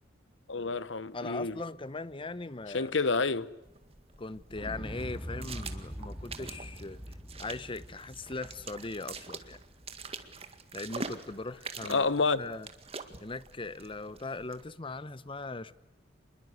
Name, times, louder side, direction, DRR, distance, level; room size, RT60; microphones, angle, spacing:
voice 1, 0.5-1.5 2.7-3.5 11.9-12.4, left 4 dB, 80° left, 1.1 m, -28 dB
voice 2, 1.1-2.9 4.2-7.0 7.4-9.6 10.7-12.1 12.4-12.7 13.2-15.7, left 3 dB, 30° left, 0.9 m, -39 dB
sound 1, 3.6-14.7, right 4 dB, 35° right, 2.0 m, -45 dB
Explosion, 4.5-10.6 10.9-11.0, equal, 5° right, 2.1 m, -44 dB
27.0 x 21.5 x 8.2 m
head